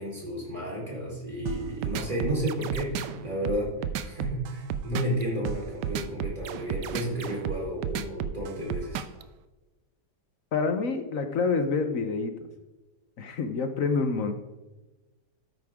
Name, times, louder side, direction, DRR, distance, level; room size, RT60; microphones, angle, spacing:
voice 1, 0.0-3.8 4.0-9.0, equal, 25° right, -5 dB, 4.3 m, -32 dB
sound 1, 1.5-9.2, right 9 dB, 85° right, 1.3 m, -32 dB
voice 2, 10.5-12.3 13.2-14.3, left 4 dB, 55° left, 8 dB, 1.2 m, -27 dB
13.0 x 9.5 x 3.6 m, 1.1 s
omnidirectional pair, 1.8 m